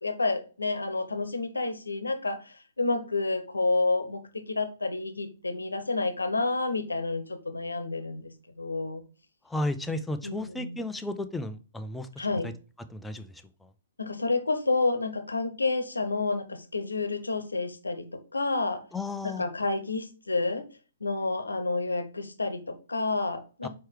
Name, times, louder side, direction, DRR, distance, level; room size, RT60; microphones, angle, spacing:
voice 1, 0.0-8.3 8.6-9.0 10.2-10.8 12.2-12.5 14.0-18.8 19.2-20.7 21.0-23.7, left 3 dB, 80° left, 9 dB, 1.0 m, -29 dB
voice 2, 9.5-12.1 12.4-12.5 12.9-13.3 18.9-19.4 23.6-23.7, left 2 dB, 5° left, 8 dB, 0.6 m, -33 dB
4.7 x 4.5 x 4.6 m, 0.36 s
figure-of-eight pair, 120°, 0 cm